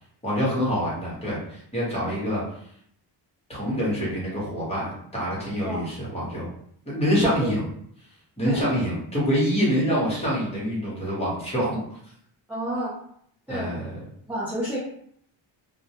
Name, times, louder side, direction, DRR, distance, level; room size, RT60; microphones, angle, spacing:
voice 1, 0.2-2.4 3.5-6.5 6.8-7.6 8.4-12.0 13.5-14.0, equal, 15° left, -7 dB, 0.9 m, -26 dB
voice 2, 12.5-13.0 13.5-13.7 14.3-14.8, right 1 dB, 5° right, -8 dB, 0.3 m, -29 dB
2.2 x 2.1 x 2.8 m, 0.66 s
cardioid pair, 160°, 48 cm